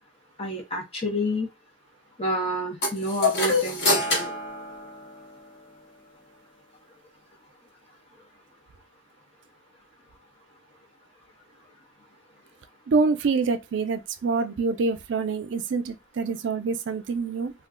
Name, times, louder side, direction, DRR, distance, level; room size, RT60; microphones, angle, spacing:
voice 1, 0.4-1.5 2.2-4.3, equal, 30° left, 0.8 m, -29 dB
sound 1, 2.8-5.5, left 2 dB, 55° left, 1.3 m, -26 dB
voice 2, 12.9-17.5, right 4 dB, 70° right, 0.4 m, -26 dB
2.3 x 2.2 x 3.6 m
head